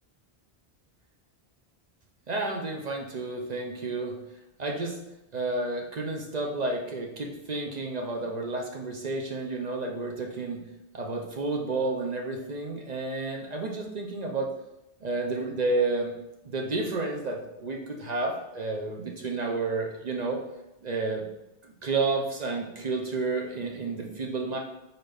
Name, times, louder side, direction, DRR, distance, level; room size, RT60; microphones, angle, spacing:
voice 1, 2.3-4.1 4.6-5.0 5.3-10.6 10.9-14.5 15.0-16.1 16.4-20.4 20.8-21.2 21.8-24.6, right 3 dB, 50° right, 0 dB, 0.6 m, -31 dB
4.0 x 3.9 x 3.3 m, 0.91 s
omnidirectional pair, 1.1 m